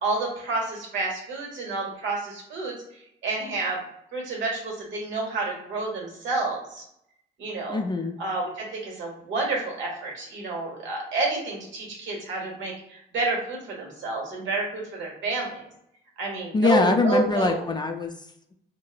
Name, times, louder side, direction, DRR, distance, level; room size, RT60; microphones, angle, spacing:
voice 1, 0.0-3.8 4.1-6.8 7.4-7.8 8.2-15.7 16.2-17.7, right 3 dB, 70° right, -1 dB, 1.2 m, -29 dB
voice 2, 7.7-8.2 16.5-18.5, left 3 dB, 20° left, 4 dB, 0.4 m, -23 dB
3.8 x 2.1 x 2.4 m, 0.75 s
cardioid pair, 90°, 20 cm